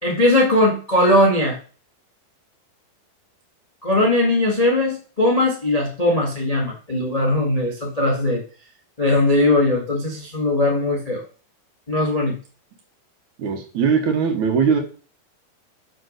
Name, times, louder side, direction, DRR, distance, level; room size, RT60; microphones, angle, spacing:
voice 1, 0.0-1.6 3.8-8.4 9.0-11.2 11.9-12.4, left 1 dB, 55° left, 0 dB, 0.4 m, -19 dB
voice 2, 13.4-14.8, right 6 dB, 60° right, 4 dB, 2.3 m, -20 dB
6.8 x 6.0 x 6.5 m, 0.39 s
omnidirectional pair, 4.3 m